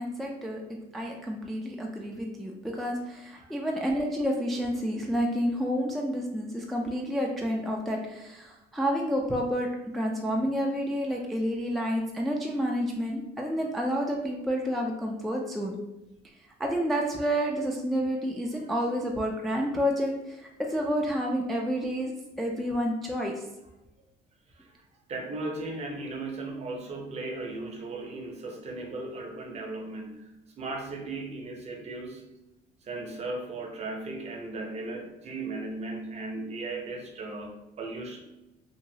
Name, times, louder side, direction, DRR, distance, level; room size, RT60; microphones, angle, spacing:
voice 1, 0.0-9.7 9.9-15.8 16.6-22.1 22.4-23.3, equal, ahead, -1 dB, 0.3 m, -29 dB
voice 2, 24.5-24.8 25.1-30.3 30.6-32.3 32.8-38.2, right 2 dB, 40° right, 2 dB, 0.6 m, -37 dB
2.9 x 2.3 x 2.6 m, 0.95 s
cardioid pair, 110°, 17 cm